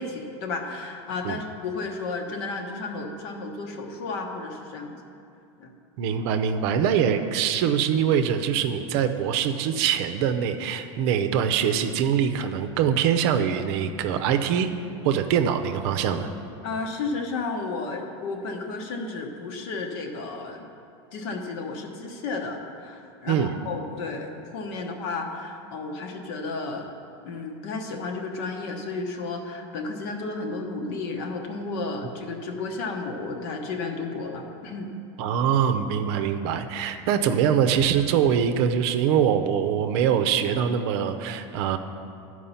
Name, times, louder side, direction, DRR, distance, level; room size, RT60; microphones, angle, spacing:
voice 1, 0.0-5.0 5.6-5.7 11.1-11.2 16.6-20.6 21.1-26.8 27.2-34.9, left 3 dB, 60° left, 3 dB, 1.2 m, -33 dB
voice 2, 6.0-14.7 15.0-16.3 23.3-23.6 35.2-41.8, right 8 dB, 60° right, 8 dB, 0.6 m, -23 dB
11.5 x 4.8 x 5.7 m, 2.6 s
supercardioid pair, 140°, 15 cm